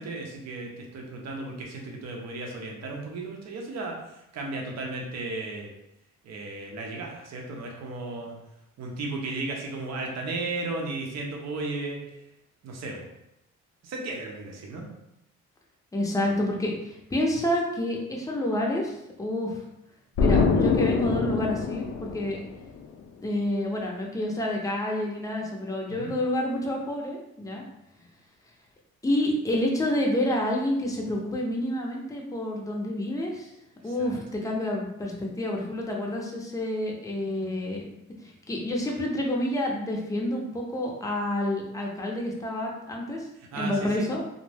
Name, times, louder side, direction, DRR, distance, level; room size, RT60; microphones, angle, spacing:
voice 1, 0.0-5.7 6.2-8.4 8.8-12.1 12.6-13.1 13.8-14.9 25.9-26.2 33.8-34.1 43.5-44.1, right 2 dB, 60° right, 0 dB, 0.7 m, -35 dB
voice 2, 15.9-19.6 20.2-22.4 23.2-27.6 29.0-33.5 33.8-37.8 38.2-43.3 43.5-44.2, left 1 dB, 10° left, -1 dB, 0.6 m, -28 dB
Explosion, 20.2-22.8, left 5 dB, 60° left, 0.5 m, -24 dB
2.5 x 2.1 x 3.3 m, 0.86 s
cardioid pair, 90°, 30 cm